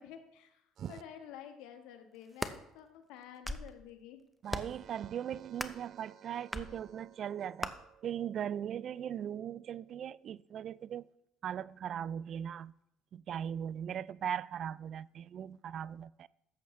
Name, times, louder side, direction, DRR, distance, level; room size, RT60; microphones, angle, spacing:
voice 1, 0.0-0.6 0.9-4.2, left 9 dB, 80° left, 1.3 m, -50 dB
sound 1, 2.1-2.6 3.2-3.7 4.5-4.8 5.6-5.9 6.5-6.7 7.6-7.7, equal, ahead, 0.7 m, -38 dB
voice 2, 4.4-11.1 11.4-12.7 13.1-16.3, right 9 dB, 55° right, 0.3 m, -39 dB
13.5 x 8.4 x 3.2 m
supercardioid pair, 85°, 0 cm